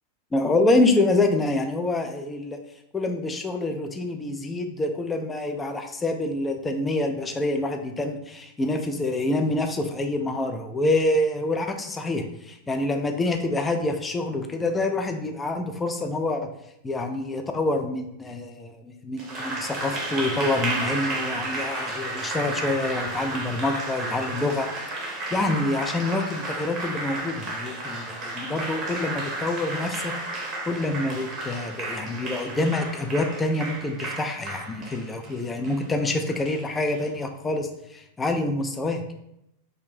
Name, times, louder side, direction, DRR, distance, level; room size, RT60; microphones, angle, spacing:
voice 1, 0.3-2.6 2.9-16.5 16.8-24.7 25.0-30.1 30.4-39.0, left 2 dB, 15° left, 5 dB, 0.3 m, -26 dB
Applause, 19.2-37.0, right 2 dB, 30° right, 0.6 m, -32 dB
2.5 x 2.1 x 3.2 m, 0.80 s
figure-of-eight pair, 90°, 0 cm